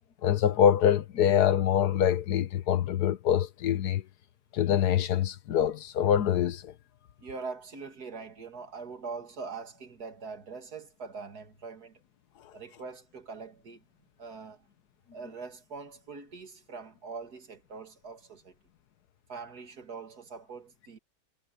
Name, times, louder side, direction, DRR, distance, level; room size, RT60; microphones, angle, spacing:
voice 1, 0.2-4.0 4.5-6.7, left 9 dB, 85° left, 1.5 m, -25 dB
voice 2, 7.2-12.0 12.5-13.8 14.2-14.7 15.1-18.6 19.3-21.0, right 4 dB, 75° right, 2.8 m, -43 dB
omnidirectional pair, 1.7 m